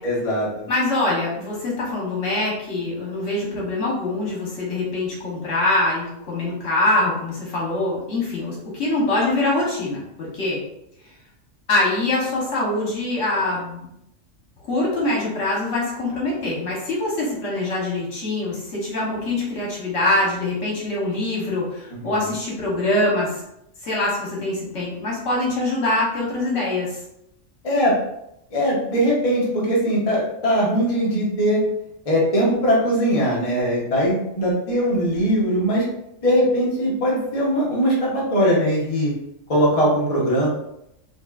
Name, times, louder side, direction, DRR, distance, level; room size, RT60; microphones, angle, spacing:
voice 1, 0.0-0.5 22.0-22.3 27.6-28.0 28.5-31.6 32.1-35.8 36.2-39.1 39.5-40.5, equal, 30° left, -5 dB, 1.0 m, -20 dB
voice 2, 0.7-10.6 11.7-13.8 14.7-23.4 23.8-27.0, left 2 dB, 70° left, -4 dB, 1.5 m, -24 dB
5.3 x 2.3 x 2.4 m, 0.80 s
omnidirectional pair, 1.3 m